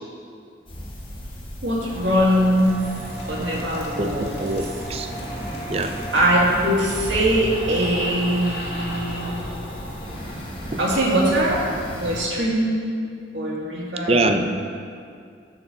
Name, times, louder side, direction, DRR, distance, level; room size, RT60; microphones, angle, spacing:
sound 1, 0.7-12.2, equal, 30° left, 1.2 m, -36 dB
voice 1, 1.6-2.8 3.3-4.3 6.1-9.3 10.8-11.7 12.0-12.9 13.3-14.5, equal, 80° right, -4 dB, 1.9 m, -22 dB
sound 2, 1.8-11.4, equal, 65° left, 2.1 m, -35 dB
voice 2, 4.0-5.1 5.7-5.9 10.7-10.8 14.1-14.4, right 2 dB, 35° right, 7 dB, 0.5 m, -23 dB
11.0 x 4.7 x 6.7 m, 2.3 s
head